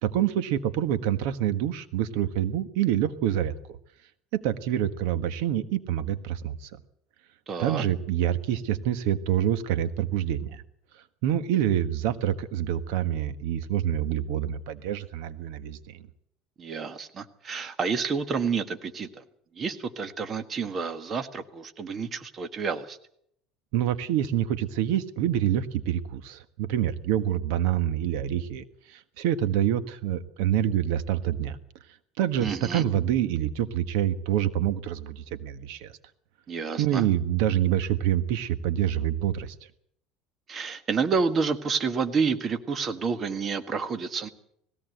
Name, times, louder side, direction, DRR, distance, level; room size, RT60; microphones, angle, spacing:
voice 1, 0.0-3.8 4.3-6.7 7.6-10.6 11.2-16.0 23.7-31.6 32.2-35.9 36.8-39.5, right 11 dB, 80° right, 11 dB, 1.4 m, -26 dB
voice 2, 7.5-7.8 16.6-19.2 19.5-23.0 32.4-32.8 36.5-37.0 40.5-44.3, right 5 dB, 30° right, 9 dB, 1.6 m, -29 dB
20.0 x 16.5 x 7.9 m, 0.70 s
cardioid pair, 140°, 0 cm